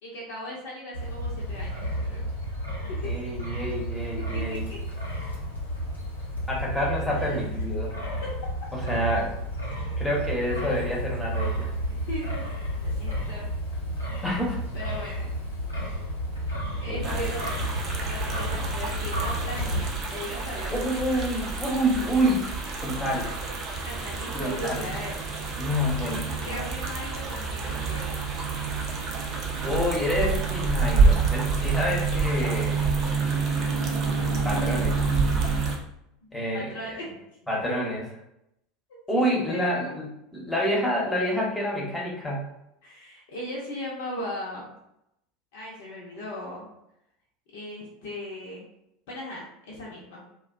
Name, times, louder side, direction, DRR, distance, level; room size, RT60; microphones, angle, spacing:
voice 1, 0.0-2.2 3.0-3.1 4.3-4.8 6.8-7.4 8.2-8.3 11.9-13.5 14.7-15.3 16.8-17.5 17.9-20.8 23.8-25.2 26.2-28.2 36.2-37.3 39.5-39.9 42.8-44.7 45.5-46.7 47.5-48.6 49.1-50.2, left 1 dB, 60° left, -4 dB, 0.6 m, -38 dB
Wind, 0.9-19.9, equal, 90° left, 1.0 m, -31 dB
voice 2, 3.0-4.6 6.5-7.9 8.7-9.3 10.0-11.7 14.2-14.6 16.9-17.3 20.7-22.5 22.8-23.3 24.3-24.9 25.6-26.7 29.6-32.8 34.2-35.0 36.3-36.7 37.5-38.0 39.1-42.4, equal, 10° left, -4 dB, 0.9 m, -28 dB
sound 1, 17.0-35.8, right 4 dB, 40° right, 0.5 m, -28 dB
2.4 x 2.2 x 2.4 m, 0.81 s
figure-of-eight pair, 75°, 0 cm